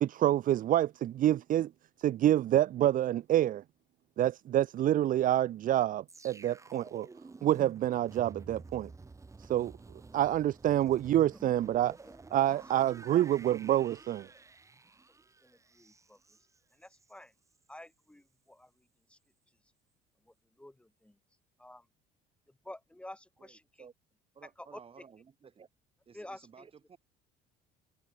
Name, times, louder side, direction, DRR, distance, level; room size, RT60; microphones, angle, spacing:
voice 1, 0.0-1.7 2.0-3.6 4.2-7.1 7.4-8.9 9.4-9.7 10.1-11.9 12.3-14.3, right 12 dB, 50° right, 0.9 m, -27 dB
sound 1, 6.1-17.2 17.5-17.7, right 3 dB, 15° right, 3.0 m, -52 dB
voice 2, 12.0-12.5 12.7-12.9 15.4-16.2 16.8-17.3 17.7-19.2 20.3-21.2 21.6-21.9 22.6-23.6 24.6-24.8 26.1-26.7, left 1 dB, 5° left, 4.0 m, -50 dB
voice 3, 23.4-23.9 24.3-25.7 26.1-27.0, right 6 dB, 35° right, 7.9 m, -55 dB
cardioid pair, 115°, 17 cm